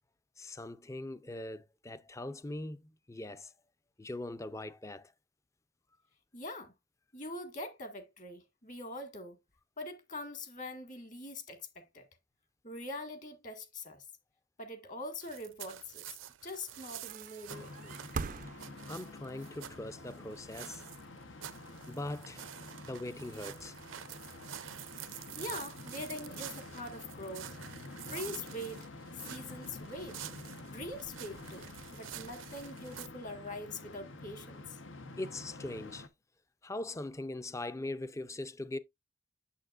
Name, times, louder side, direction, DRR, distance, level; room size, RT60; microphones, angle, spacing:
voice 1, 0.4-3.5 4.0-5.1 18.9-20.9 21.9-22.5 22.8-23.8 35.2-36.1 36.6-38.8, left 2 dB, 15° left, 0.5 m, -41 dB
voice 2, 6.3-6.7 7.1-9.4 9.8-12.1 12.6-14.0 14.6-18.0 25.3-27.5 28.1-28.9 29.2-30.2 30.6-34.8, left 1 dB, 40° left, 1.8 m, -43 dB
sound 1, 15.2-33.1, right 11 dB, 85° right, 0.6 m, -48 dB
sound 2, 17.0-19.2 20.3-21.8, right 5 dB, 45° right, 0.4 m, -42 dB
sound 3, 17.5-36.1, left 2 dB, 80° left, 1.0 m, -49 dB
8.4 x 7.1 x 2.5 m
head